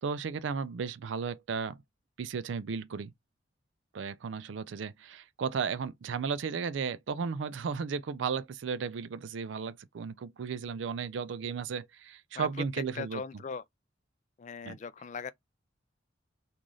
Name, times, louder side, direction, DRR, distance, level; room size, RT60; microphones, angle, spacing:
voice 1, 0.0-1.8 2.2-3.1 3.9-13.2 14.6-14.8, right 6 dB, 75° right, 0.4 m, -34 dB
voice 2, 12.3-13.6 14.4-15.3, left 5 dB, 40° left, 0.3 m, -39 dB
3.1 x 2.4 x 3.8 m
head